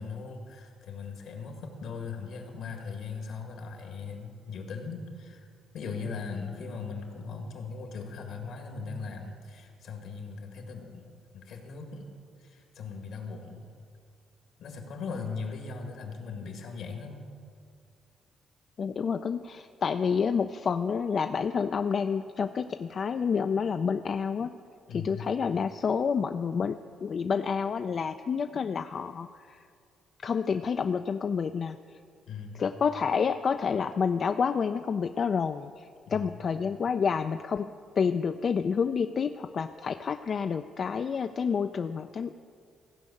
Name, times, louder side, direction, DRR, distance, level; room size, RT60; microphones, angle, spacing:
voice 1, 0.0-5.5 5.7-12.1 12.4-13.7 14.6-17.2 24.9-25.3 32.3-32.6 36.1-36.3, left 5 dB, 75° left, 3 dB, 1.8 m, -39 dB
voice 2, 18.8-24.5 24.9-29.6 30.2-32.0 32.5-37.7 38.0-42.4, left 6 dB, 50° left, 8 dB, 0.3 m, -29 dB
15.0 x 5.3 x 8.4 m, 2.3 s
cardioid pair, 90°, 0 cm